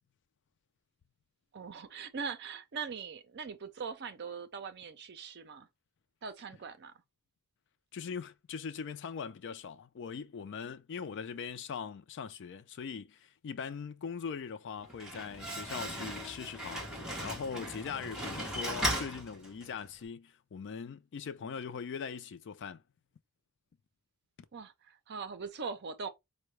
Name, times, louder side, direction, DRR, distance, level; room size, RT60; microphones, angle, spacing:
voice 1, 1.5-5.7 6.2-6.9 24.5-26.1, right 5 dB, 50° right, 0.5 m, -41 dB
voice 2, 7.9-16.9 17.2-22.8, left 6 dB, 55° left, 0.4 m, -41 dB
Slam, 14.8-19.9, equal, 5° right, 1.1 m, -37 dB
4.6 x 2.2 x 3.1 m
head